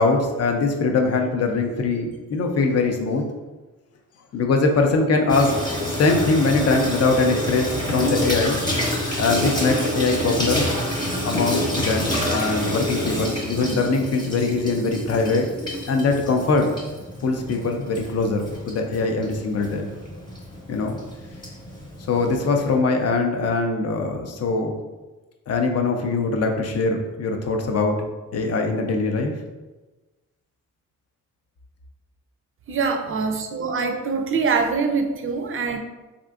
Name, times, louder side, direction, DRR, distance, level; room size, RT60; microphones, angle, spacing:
voice 1, 0.0-3.2 4.3-5.5 6.0-8.6 9.2-10.7 11.2-15.5 15.9-16.7 17.2-19.9 20.7-21.0 22.1-24.7 25.5-28.0 28.3-29.3, left 3 dB, 50° left, 3 dB, 0.5 m, -22 dB
Water tap faucet / Sink (filling or washing), 5.3-22.8, equal, 15° left, 0.9 m, -28 dB
voice 2, 32.7-35.8, right 4 dB, 40° right, 5 dB, 0.4 m, -24 dB
3.6 x 2.5 x 2.4 m, 1.2 s
cardioid pair, 110°, 32 cm